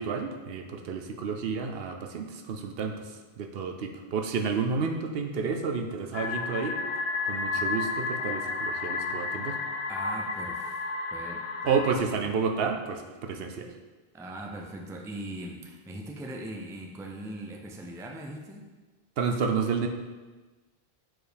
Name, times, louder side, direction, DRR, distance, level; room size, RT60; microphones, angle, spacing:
voice 1, 0.0-6.8 7.2-9.6 11.7-13.7 19.2-19.9, right 5 dB, 70° right, 4 dB, 0.8 m, -30 dB
sound 1, 6.1-12.0, left 4 dB, 60° left, 0.6 m, -32 dB
voice 2, 9.9-10.8 11.1-11.7 14.1-18.7, right 1 dB, 5° right, 1 dB, 0.4 m, -40 dB
4.6 x 4.4 x 5.1 m, 1.3 s
omnidirectional pair, 1.1 m